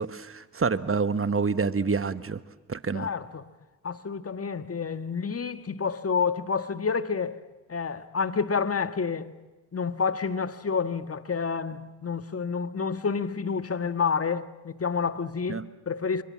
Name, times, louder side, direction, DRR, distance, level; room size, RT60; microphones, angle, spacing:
voice 1, 0.0-2.4 2.7-3.1 15.5-15.7, right 5 dB, 35° right, 1.4 m, -27 dB
voice 2, 2.9-3.4 3.8-7.4 7.7-9.3 9.7-16.2, left 5 dB, 40° left, 1.6 m, -29 dB
29.0 x 24.0 x 7.5 m
supercardioid pair, 45°, 38 cm